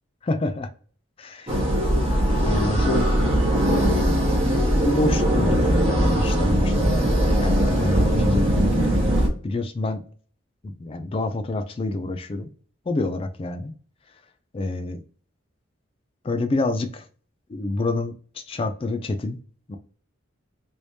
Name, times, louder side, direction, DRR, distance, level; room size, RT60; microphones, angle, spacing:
voice 1, 0.2-0.7 1.2-1.7 2.4-3.2 3.7-4.0 4.8-7.0 7.4-9.1 9.4-10.0 10.6-12.5 12.9-13.7 14.5-15.0 16.2-17.1 17.5-19.4 19.7-19.8, left 2 dB, 30° left, 9 dB, 0.3 m, -27 dB
sound 1, 1.5-9.3, equal, 30° right, 1.0 m, -20 dB
3.2 x 2.7 x 3.1 m, 0.43 s
head